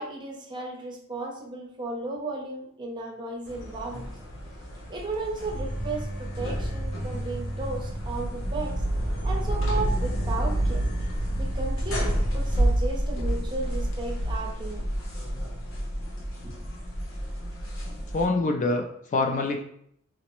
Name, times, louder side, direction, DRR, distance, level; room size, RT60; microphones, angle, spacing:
voice 1, 0.0-4.2 4.9-8.8 9.2-10.8 11.4-14.9 16.4-16.6, right 2 dB, 20° right, -1 dB, 0.6 m, -34 dB
sound 1, 3.5-18.2, right 1 dB, 70° left, 0.8 m, -29 dB
voice 2, 18.0-19.6, left 3 dB, 35° left, 4 dB, 0.3 m, -26 dB
3.9 x 2.0 x 2.9 m, 0.69 s
head